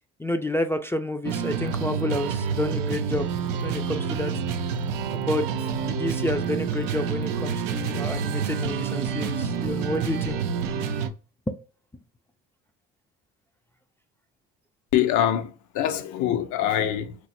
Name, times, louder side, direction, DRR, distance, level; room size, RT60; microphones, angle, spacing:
voice 1, 0.2-3.3 3.5-4.3 5.1-5.4 5.8-10.4 11.5-11.6, left 1 dB, 10° left, 0.3 m, -29 dB
sound 1, 1.2-11.1, right 6 dB, 90° right, 0.5 m, -28 dB
voice 2, 14.9-17.2, left 11 dB, 70° left, 0.6 m, -24 dB
3.1 x 2.0 x 4.1 m
supercardioid pair, 70°, 31 cm